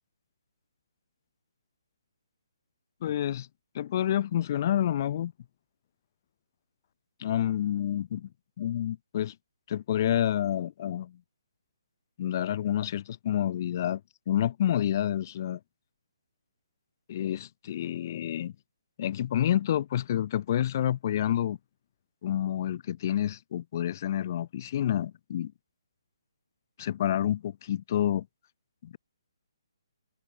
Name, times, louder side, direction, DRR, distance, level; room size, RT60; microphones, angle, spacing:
voice 1, 3.0-3.5 3.7-5.3 7.2-8.3 8.6-9.3 9.7-11.2 12.2-14.0 14.3-15.6 17.1-18.5 19.0-21.6 22.2-25.5 26.8-28.3 28.8-29.0, left 11 dB, 40° left, 1.3 m, -28 dB
hypercardioid pair, 155°, 3 cm